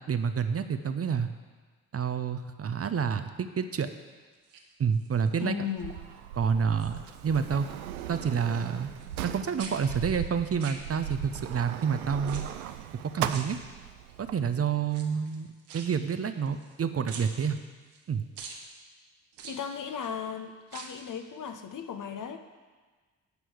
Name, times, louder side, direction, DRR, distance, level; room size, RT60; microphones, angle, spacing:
voice 1, 0.1-1.3 1.9-3.9 4.8-5.6 6.4-7.7 8.1-8.9 9.2-12.4 13.0-13.6 14.2-15.5 15.7-17.6 18.1-18.2, right 6 dB, 35° right, 9 dB, 0.8 m, -28 dB
sound 1, 4.3-5.3 5.8-6.2 6.5-7.5 7.8-9.3 9.6-11.4 12.2-12.8 13.2-14.1 14.8-16.8 17.1-18.0 18.4-18.6 19.3-20.1 20.6-21.1 21.4-21.5, right 5 dB, 70° right, 1.5 m, -46 dB
voice 2, 5.4-6.0 19.4-22.4, left 7 dB, 45° left, 7 dB, 1.1 m, -36 dB
Sliding door, 5.8-14.3, right 11 dB, 85° right, 0.5 m, -38 dB
9.9 x 6.1 x 8.1 m, 1.4 s
hypercardioid pair, 45°, 42 cm